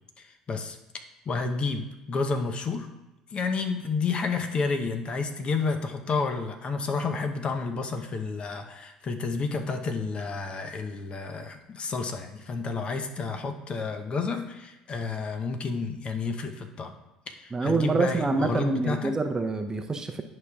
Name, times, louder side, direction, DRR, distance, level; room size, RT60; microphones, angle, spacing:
voice 1, 0.2-0.8 1.3-2.9 3.3-16.9 17.3-19.1, left 4 dB, 40° left, 6 dB, 0.8 m, -30 dB
voice 2, 17.5-20.2, right 3 dB, 25° right, 6 dB, 0.6 m, -26 dB
11.0 x 5.2 x 2.3 m, 0.98 s
hypercardioid pair, 65°, 3 cm